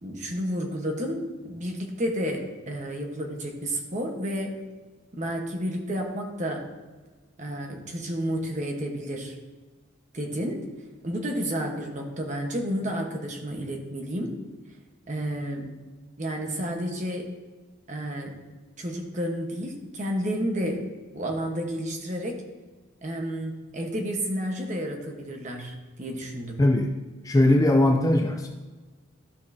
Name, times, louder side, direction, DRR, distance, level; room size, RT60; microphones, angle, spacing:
voice 1, 0.0-4.6 5.1-6.7 7.4-9.4 10.1-10.6 11.0-14.3 15.1-15.7 16.2-17.3 17.9-18.4 18.8-20.8 21.1-22.4 23.0-26.6, equal, 35° right, 2 dB, 1.1 m, -31 dB
voice 2, 26.6-27.0 27.2-28.5, left 1 dB, 15° left, 4 dB, 0.4 m, -20 dB
13.0 x 5.4 x 2.7 m, 1.3 s
head